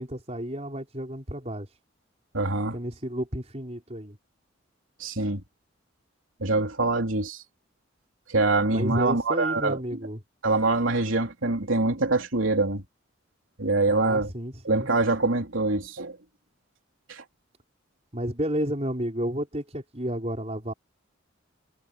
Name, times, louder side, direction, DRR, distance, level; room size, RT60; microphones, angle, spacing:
voice 1, 0.0-1.7 2.7-4.2 8.7-10.2 13.9-14.9 18.1-20.7, equal, 30° right, 5.0 m, -31 dB
voice 2, 2.3-2.8 5.0-5.4 6.4-7.4 8.3-9.8 10.4-12.8 13.6-14.3 14.7-16.2 17.1-17.2, right 3 dB, 80° right, 3.3 m, -24 dB
head